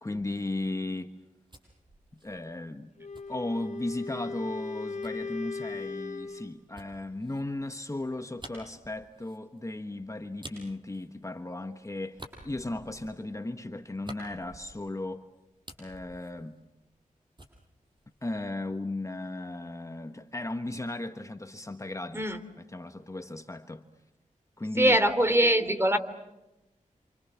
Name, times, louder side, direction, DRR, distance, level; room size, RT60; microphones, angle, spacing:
voice 1, 0.0-1.1 2.1-2.9 3.3-15.2 15.8-16.6 18.2-22.3 22.6-23.8 24.6-25.0, left 2 dB, 20° left, 1.4 m, -36 dB
sound 1, 1.1-4.1 5.0-11.7 12.1-15.1 15.4-17.1 17.4-18.7, right 1 dB, 35° right, 7.3 m, -51 dB
Wind instrument woodwind instrument, 3.0-6.5, left 4 dB, 60° left, 2.9 m, -37 dB
voice 2, 24.8-26.0, right 1 dB, 15° right, 3.3 m, -22 dB
29.0 x 27.0 x 7.2 m
cardioid pair, 65°, 14 cm